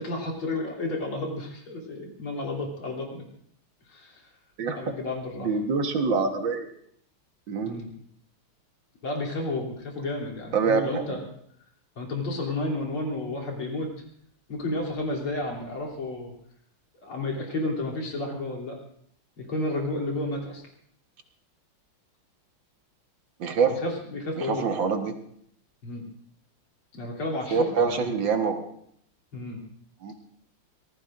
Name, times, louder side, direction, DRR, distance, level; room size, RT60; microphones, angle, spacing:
voice 1, 0.0-3.2 3.9-4.3 4.7-5.5 7.7-7.9 9.0-11.2 12.0-13.9 14.5-16.3 17.0-18.8 19.4-20.6 23.6-24.7 25.8-26.0 26.9-28.2 29.3-29.6, left 2 dB, 85° left, -2 dB, 4.1 m, -31 dB
voice 2, 4.6-4.9 5.4-6.7 7.5-7.8 10.5-11.2 23.4-23.8 24.4-25.1 27.5-28.7 30.0-30.1, right 5 dB, 65° right, 4 dB, 2.1 m, -25 dB
25.5 x 18.5 x 2.6 m, 0.68 s
omnidirectional pair, 2.3 m